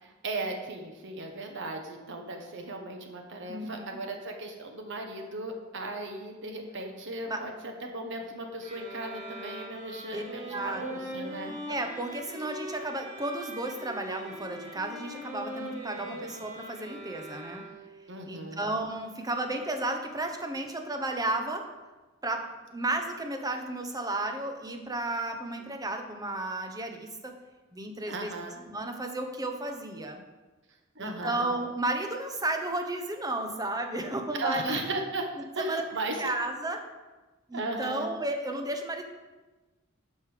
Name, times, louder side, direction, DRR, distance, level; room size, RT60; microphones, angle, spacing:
voice 1, 0.0-11.6 16.0-16.1 18.1-18.6 28.1-28.6 30.9-31.5 34.4-35.3 35.5-36.3 37.5-38.1, right 2 dB, 60° right, 3 dB, 1.2 m, -36 dB
voice 2, 3.5-4.0 7.3-7.4 10.1-10.2 10.5-10.8 11.7-17.6 18.3-21.6 22.2-22.4 22.7-27.3 27.7-28.3 28.7-30.2 31.0-34.8 35.6-35.8 36.2-36.8 37.5-39.0, right 2 dB, 20° right, 4 dB, 1.0 m, -33 dB
sound 1, 8.6-18.1, right 1 dB, 35° right, 1.9 m, -41 dB
11.5 x 5.4 x 5.0 m, 1.2 s
head